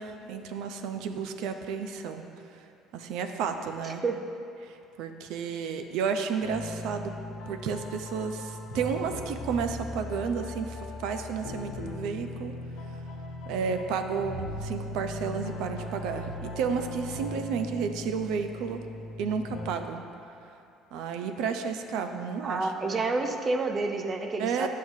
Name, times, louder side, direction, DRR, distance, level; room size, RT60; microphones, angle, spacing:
voice 1, 0.0-2.2 2.5-2.7 2.9-4.0 4.6-7.1 7.5-12.5 13.5-18.9 19.2-20.0 20.4-20.5 20.9-23.0 24.4-24.7, right 6 dB, 75° right, 7 dB, 0.5 m, -32 dB
sound 1, 6.4-19.7, left 2 dB, 85° left, 0.9 m, -39 dB
voice 2, 22.4-24.7, right 3 dB, 30° right, 5 dB, 0.6 m, -29 dB
9.5 x 6.4 x 2.7 m, 2.7 s
supercardioid pair, 90°, 0 cm